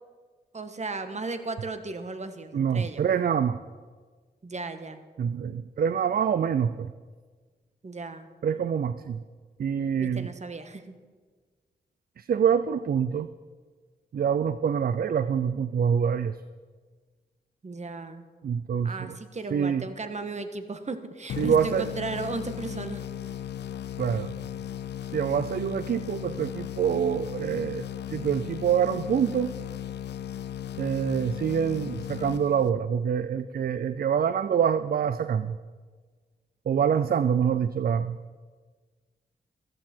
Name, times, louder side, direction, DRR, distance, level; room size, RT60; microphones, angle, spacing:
voice 1, 0.5-3.0 4.4-5.0 7.8-8.3 10.0-10.9 17.6-18.2 18.8-23.0, right 3 dB, 40° right, 9 dB, 1.5 m, -35 dB
voice 2, 2.5-3.6 5.2-6.9 8.4-9.2 9.6-10.3 12.2-13.3 14.1-16.4 18.4-19.2 19.5-19.9 21.4-21.9 24.0-24.3 25.1-29.5 30.8-35.6 36.7-38.2, right 7 dB, 60° right, 13 dB, 0.5 m, -26 dB
sound 1, 21.3-33.0, left 10 dB, 80° left, 0.5 m, -36 dB
14.5 x 14.0 x 4.5 m, 1.5 s
cardioid pair, 50°, 17 cm